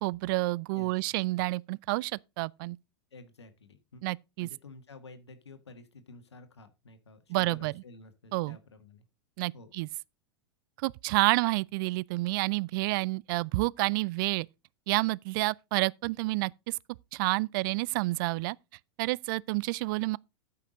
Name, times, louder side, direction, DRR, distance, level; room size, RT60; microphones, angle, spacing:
voice 1, 0.0-2.8 4.0-4.5 7.3-7.7 8.3-8.6 9.4-9.9 10.8-14.5 14.9-16.8 17.1-18.6 19.0-20.2, right 22 dB, 55° right, 0.4 m, -29 dB
voice 2, 0.7-1.1 3.1-4.0 4.4-9.0 9.5-9.7, left 3 dB, 85° left, 1.5 m, -51 dB
13.5 x 5.8 x 3.8 m
hypercardioid pair, 100°, 14 cm